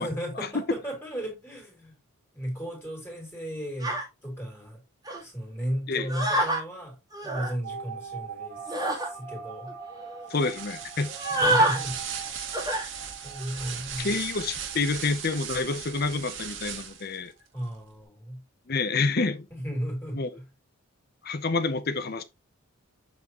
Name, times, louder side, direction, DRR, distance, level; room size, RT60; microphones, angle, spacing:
voice 1, 0.0-1.9 2.3-4.0 4.2-4.8 5.2-8.6 9.0-9.7 11.3-12.0 13.2-14.1 17.5-18.4 19.5-20.4, equal, 10° left, 2.9 m, -35 dB
sound 1, 3.8-4.0 5.1-5.2 6.1-6.6 7.1-7.5 8.7-9.1 9.7-9.8 10.0-10.2 11.1-11.8 12.5-12.9 13.4-13.7, right 1 dB, 15° right, 2.0 m, -26 dB
sound 2, 7.6-16.1 16.4-16.5 16.7-16.8, right 6 dB, 80° right, 2.7 m, -42 dB
voice 2, 10.3-11.1 14.0-17.3 18.7-19.5 20.1-20.3 21.2-22.2, left 3 dB, 45° left, 0.6 m, -28 dB
sound 3, 10.3-17.2, right 7 dB, 60° right, 1.6 m, -38 dB
7.6 x 5.9 x 2.9 m
head